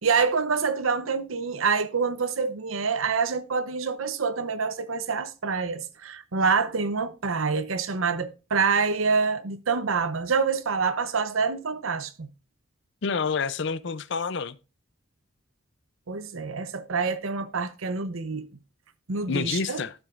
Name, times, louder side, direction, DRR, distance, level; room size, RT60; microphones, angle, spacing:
voice 1, 0.0-12.3 16.1-18.5 19.1-19.8, right 5 dB, 90° right, 0.8 m, -26 dB
voice 2, 13.0-14.6 19.3-19.9, left 5 dB, 60° left, 0.6 m, -28 dB
12.0 x 7.4 x 2.5 m
head